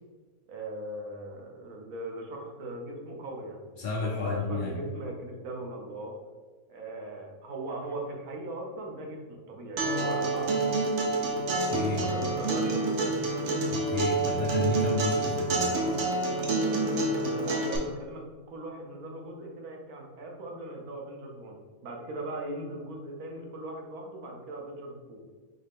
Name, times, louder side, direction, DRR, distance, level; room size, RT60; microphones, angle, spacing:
voice 1, 0.5-3.6 4.0-6.1 6.7-10.8 11.9-13.2 16.8-21.6 21.8-25.2, right 1 dB, 80° right, 0 dB, 1.3 m, -39 dB
voice 2, 3.7-4.7 11.6-12.1 13.7-15.7, left 3 dB, 60° left, -4 dB, 0.5 m, -32 dB
Acoustic guitar, 9.8-17.8, right 2 dB, 55° right, 0.9 m, -28 dB
4.2 x 3.2 x 3.4 m, 1.4 s
omnidirectional pair, 1.6 m